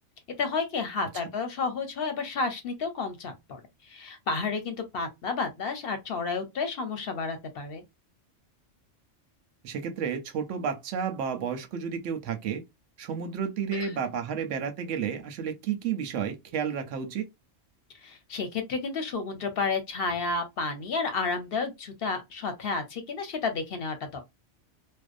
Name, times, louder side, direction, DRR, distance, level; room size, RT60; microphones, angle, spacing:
voice 1, 0.4-7.8 13.7-13.9 18.0-24.2, left 4 dB, 60° left, 0.7 m, -31 dB
voice 2, 9.6-12.6 13.0-17.3, right 7 dB, 80° right, 1.0 m, -31 dB
2.6 x 2.1 x 2.4 m
omnidirectional pair, 1.3 m